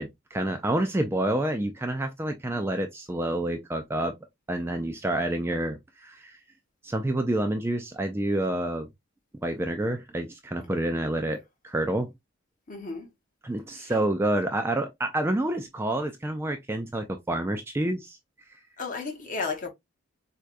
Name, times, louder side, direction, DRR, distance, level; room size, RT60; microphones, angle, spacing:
voice 1, 0.0-4.1 4.5-6.4 6.8-8.9 9.4-12.1 13.4-18.2, right 1 dB, 10° right, 0.3 m, -28 dB
voice 2, 12.7-13.1 13.7-14.0 18.8-19.7, left 4 dB, 40° left, 1.0 m, -33 dB
4.6 x 2.3 x 2.5 m
head